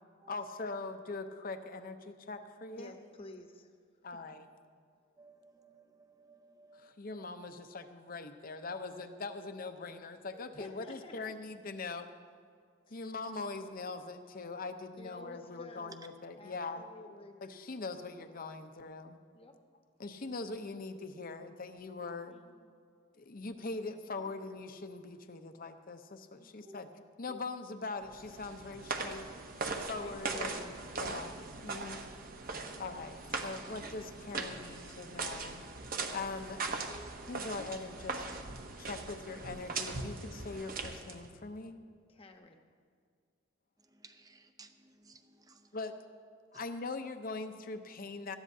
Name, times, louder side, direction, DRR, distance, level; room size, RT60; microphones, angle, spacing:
voice 1, 0.3-2.9 4.0-4.5 6.7-12.1 12.9-16.9 17.4-19.2 20.0-22.4 23.2-29.3 29.8-31.3 31.6-32.1 32.8-35.6 36.1-36.7 37.3-38.3 38.8-41.8 45.7-45.9 46.5-48.4, left 3 dB, 45° left, 8 dB, 0.7 m, -42 dB
voice 2, 2.8-3.7 10.5-11.3 12.9-13.1 15.0-15.9 16.4-17.4 19.3-19.6 22.3-22.7 26.3-26.8 29.8-30.7 31.0-31.2 32.6-33.0 42.1-42.6, left 2 dB, 30° left, 4 dB, 1.0 m, -51 dB
voice 3, 5.2-6.9 10.3-10.5 24.2-24.3 26.6-26.8 27.3-27.4 36.9-37.4 43.9-45.7, right 2 dB, 20° right, 7 dB, 0.6 m, -57 dB
sound 1, 28.0-41.3, right 3 dB, 45° right, 0.9 m, -40 dB
18.5 x 13.5 x 2.7 m, 2.1 s
head